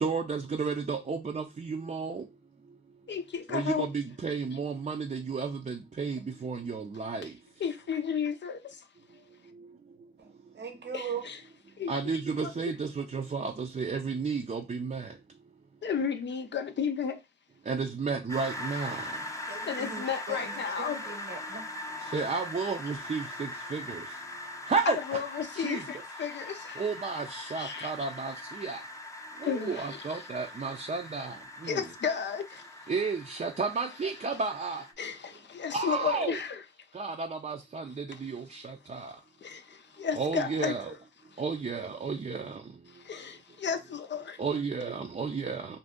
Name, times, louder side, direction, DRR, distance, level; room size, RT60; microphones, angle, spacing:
voice 1, 0.0-2.2 3.5-7.3 11.9-15.0 17.7-19.0 22.1-24.0 24.7-25.2 25.6-25.8 26.8-28.3 28.6-28.8 29.4-31.3 31.6-31.8 32.9-34.8 35.7-36.4 37.0-37.8 38.2-38.6 38.9-39.1 40.2-40.9 41.4-42.5 44.4-45.7, right 4 dB, 40° right, 0.5 m, -32 dB
voice 2, 3.1-3.9 7.2-7.3 7.6-8.9 10.9-11.4 11.8-11.9 12.4-12.5 15.8-17.2 19.7-21.0 24.9-26.9 27.5-27.9 29.4-30.3 31.6-32.9 35.0-36.6 38.1-38.2 39.0-39.2 39.4-40.8 41.3-41.4 42.9-44.4, left 7 dB, 65° left, 0.4 m, -33 dB
voice 3, 10.2-11.3 19.5-21.7, right 6 dB, 65° right, 0.8 m, -40 dB
sound 1, 18.3-34.9, left 1 dB, 15° left, 0.6 m, -41 dB
2.6 x 2.4 x 3.5 m
cardioid pair, 45°, 20 cm